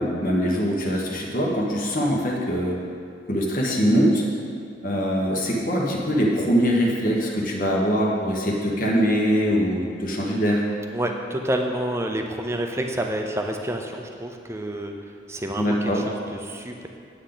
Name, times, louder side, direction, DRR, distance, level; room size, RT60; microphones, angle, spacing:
voice 1, 0.0-2.8 3.3-4.2 4.8-10.6 15.6-16.0, equal, 45° left, -2 dB, 1.2 m, -22 dB
voice 2, 10.9-14.9 15.3-16.9, right 1 dB, 15° right, 3 dB, 0.6 m, -28 dB
8.5 x 8.4 x 3.9 m, 2.3 s
head